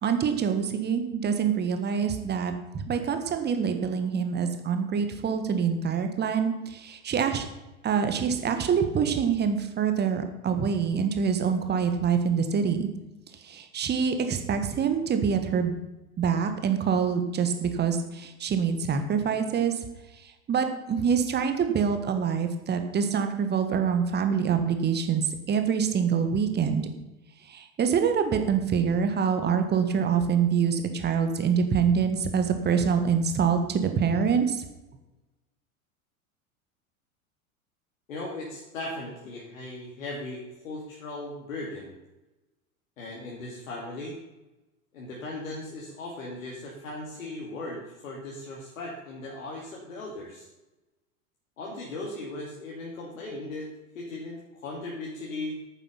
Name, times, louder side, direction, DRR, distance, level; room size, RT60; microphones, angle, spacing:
voice 1, 0.0-7.4 7.8-12.9 13.5-15.7 16.2-19.7 20.5-25.2 25.5-26.8 27.5-34.5, right 6 dB, 25° right, 7 dB, 1.7 m, -25 dB
voice 2, 38.1-41.9 43.0-44.2 44.9-50.5 51.6-53.7 53.9-55.6, left 2 dB, 65° left, -3 dB, 2.7 m, -37 dB
11.5 x 9.1 x 5.8 m, 1.0 s
figure-of-eight pair, 85°, 43 cm